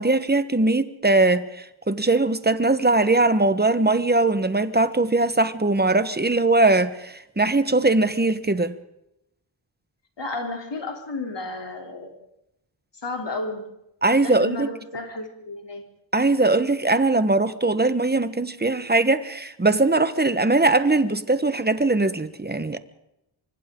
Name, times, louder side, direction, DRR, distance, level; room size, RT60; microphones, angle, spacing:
voice 1, 0.0-8.7 14.0-14.7 16.1-22.8, right 2 dB, 20° right, 1.2 m, -21 dB
voice 2, 10.2-12.1 13.0-13.6 14.2-15.9, left 2 dB, 60° left, 3.4 m, -32 dB
27.5 x 25.0 x 3.8 m
wide cardioid pair, 105°, 48 cm